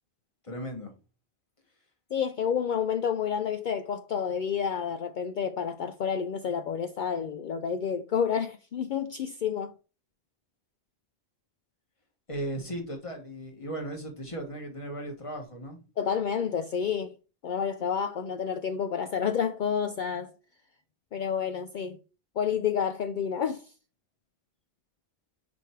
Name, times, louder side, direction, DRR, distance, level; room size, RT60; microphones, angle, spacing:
voice 1, 0.4-0.9 12.3-15.8, right 1 dB, 30° left, 1.6 m, -36 dB
voice 2, 2.1-9.7 16.0-17.1 17.4-20.3 21.1-22.0 22.4-23.7, left 7 dB, 60° left, 0.6 m, -29 dB
5.3 x 4.5 x 4.6 m
omnidirectional pair, 1.0 m